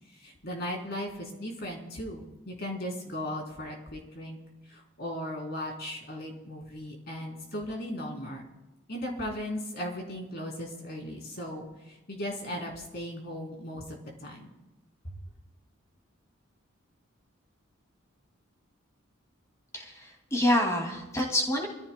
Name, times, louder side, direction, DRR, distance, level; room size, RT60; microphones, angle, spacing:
voice 1, 0.2-4.4 4.7-8.4 8.9-11.7 12.1-14.5, equal, 50° left, 0 dB, 3.8 m, -37 dB
voice 2, 19.7-21.7, left 1 dB, 15° left, 1 dB, 2.6 m, -27 dB
26.0 x 14.5 x 2.3 m, 1.0 s
head